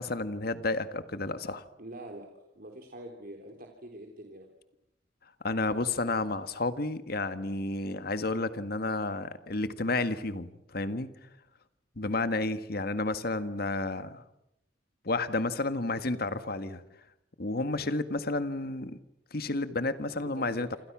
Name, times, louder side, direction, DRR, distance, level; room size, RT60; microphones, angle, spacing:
voice 1, 0.0-1.6 5.4-11.1 12.0-14.2 15.1-16.8 17.4-19.0 19.3-20.8, left 2 dB, 60° left, 11 dB, 1.7 m, -31 dB
voice 2, 1.8-4.5 20.1-20.8, right 1 dB, 55° right, 2 dB, 3.6 m, -45 dB
28.0 x 27.0 x 6.2 m, 0.80 s
head